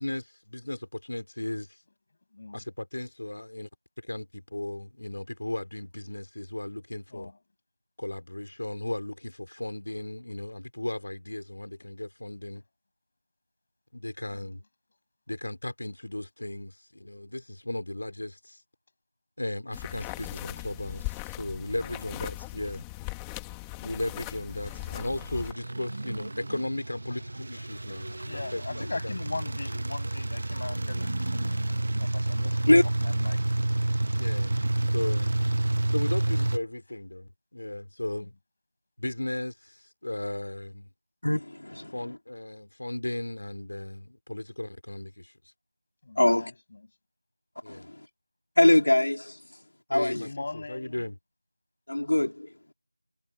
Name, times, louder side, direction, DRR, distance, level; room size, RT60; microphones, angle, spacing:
voice 1, 0.0-1.8 2.5-3.7 4.0-7.3 8.0-12.6 13.9-14.6 15.3-18.6 19.4-22.8 23.8-29.2 34.1-34.5 34.9-35.3 35.9-38.3 39.0-40.9 41.9-45.3 47.6-47.8 49.9-50.3 50.5-51.1, left 1 dB, 70° left, 3.2 m, -36 dB
voice 2, 2.3-2.6 7.1-7.4 14.3-14.5 21.7-22.1 23.8-24.1 28.2-32.6 33.0-33.4 38.2-38.3 46.0-46.5 50.1-51.0, left 3 dB, 25° left, 7.8 m, -40 dB
sound 1, 19.7-25.5, left 21 dB, 5° left, 1.6 m, -39 dB
sound 2, 24.6-36.6, right 2 dB, 35° right, 1.1 m, -29 dB
voice 3, 41.2-42.0 46.2-46.5 47.7-48.1 48.6-49.4 49.9-50.3 51.9-52.5, left 1 dB, 90° left, 2.6 m, -23 dB
figure-of-eight pair, 180°, 0 cm